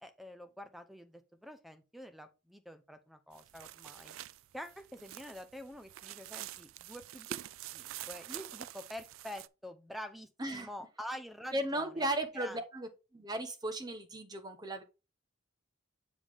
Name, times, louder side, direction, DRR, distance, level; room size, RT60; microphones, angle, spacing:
voice 1, 0.0-4.1 4.5-12.1 12.3-12.6, equal, ahead, 0.5 m, -47 dB
sound 1, 3.3-9.5, right 13 dB, 75° right, 0.3 m, -46 dB
voice 2, 11.5-14.8, right 1 dB, 20° right, 0.9 m, -36 dB
7.2 x 5.0 x 3.5 m
head